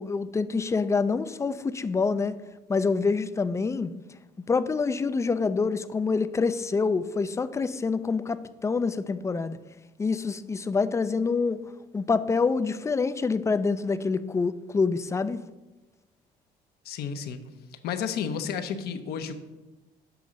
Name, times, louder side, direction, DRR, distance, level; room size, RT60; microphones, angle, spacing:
voice 1, 0.0-2.4 2.7-3.9 4.5-9.6 10.0-11.6 11.9-15.4, left 4 dB, 15° left, 13 dB, 0.3 m, -26 dB
voice 2, 16.8-17.4 17.7-19.3, left 7 dB, 70° left, 9 dB, 0.7 m, -32 dB
7.0 x 3.8 x 6.3 m, 1.1 s
cardioid pair, 110°, 17 cm